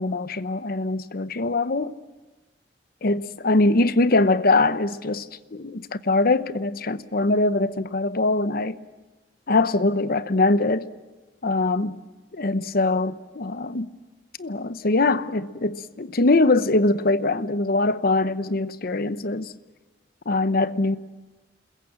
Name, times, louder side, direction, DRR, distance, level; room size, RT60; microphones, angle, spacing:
voice 1, 0.0-1.9 3.0-5.3 5.5-8.8 9.5-10.8 11.4-12.0 12.3-13.9 14.4-19.5 20.3-21.0, left 2 dB, 55° left, 0.9 m, -22 dB
28.0 x 21.5 x 7.5 m
head